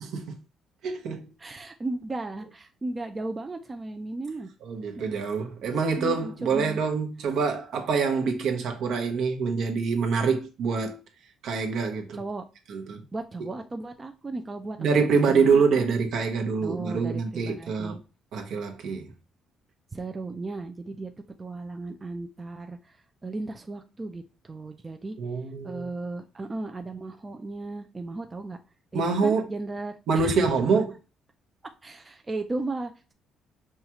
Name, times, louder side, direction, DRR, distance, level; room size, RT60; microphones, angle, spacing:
voice 1, 0.0-0.3 0.8-1.2 4.6-11.0 11.4-12.2 12.7-13.0 14.8-18.0 18.3-19.1 25.2-25.9 28.9-29.5 30.1-30.9, right 5 dB, 70° right, 0.9 m, -25 dB
voice 2, 1.4-4.5 5.0-5.1 6.0-6.8 12.1-12.5 13.1-15.8 16.6-18.0 19.9-21.1 21.4-25.2 25.6-28.6 28.9-30.3 31.8-33.1, right 2 dB, 20° right, 0.4 m, -35 dB
5.5 x 2.4 x 2.9 m
cardioid pair, 125°, 0 cm